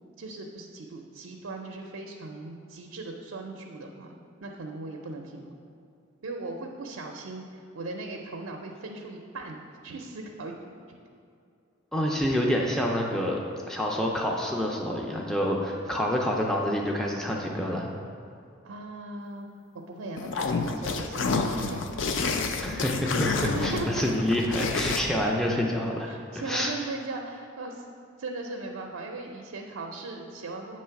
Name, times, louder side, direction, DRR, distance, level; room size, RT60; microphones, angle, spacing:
voice 1, 0.2-4.2 4.4-5.6 6.2-10.5 18.6-19.5 19.9-21.9 23.4-24.1 26.1-27.9 28.2-30.8, right 3 dB, 85° right, 1 dB, 0.5 m, -38 dB
voice 2, 11.9-13.4 13.7-17.9 22.6-26.1 26.5-26.7, equal, ahead, -2 dB, 0.4 m, -27 dB
sound 1, 20.2-25.0, left 4 dB, 60° left, 0.4 m, -29 dB
8.0 x 3.1 x 5.7 m, 2.5 s
head